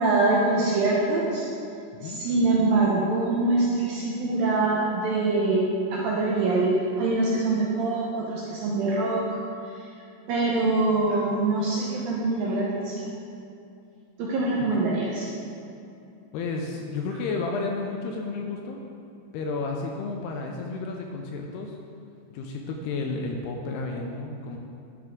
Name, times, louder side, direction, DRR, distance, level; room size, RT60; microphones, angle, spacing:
voice 1, 0.0-1.5 2.0-9.2 10.3-13.1 14.2-15.3, right 2 dB, 75° right, -4 dB, 2.2 m, -24 dB
voice 2, 16.3-18.8 19.3-21.8 22.3-24.6, left 3 dB, 80° left, 1 dB, 2.4 m, -32 dB
12.0 x 6.6 x 3.7 m, 2.6 s
omnidirectional pair, 5.1 m